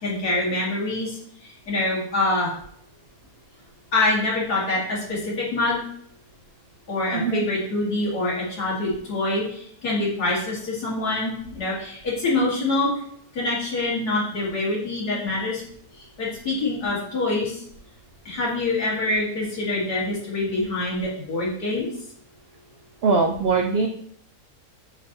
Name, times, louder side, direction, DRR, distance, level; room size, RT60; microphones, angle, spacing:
voice 1, 0.0-2.5 3.9-5.8 6.9-12.9 13.3-15.6 15.9-17.6 18.2-21.9, left 2 dB, 70° left, -6 dB, 2.7 m, -25 dB
voice 2, 7.1-7.4 23.0-23.9, right 4 dB, 70° right, 4 dB, 0.5 m, -21 dB
8.1 x 4.2 x 3.0 m, 0.65 s
omnidirectional pair, 1.7 m